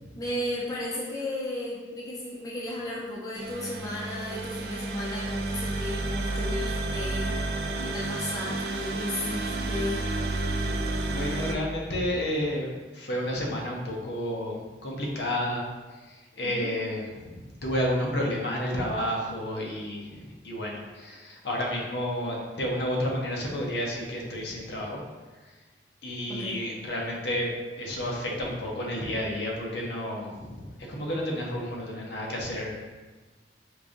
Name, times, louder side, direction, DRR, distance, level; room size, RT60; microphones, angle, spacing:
voice 1, 0.2-7.4 7.8-10.1 16.4-16.7 26.3-26.6, left 1 dB, 20° left, -5 dB, 0.5 m, -34 dB
sound 1, 3.3-11.5, right 2 dB, 60° right, 0.3 m, -31 dB
voice 2, 11.0-12.7 12.9-15.6 16.1-25.0 26.0-32.7, equal, 70° left, -2 dB, 0.7 m, -31 dB
4.6 x 2.6 x 2.5 m, 1.3 s
head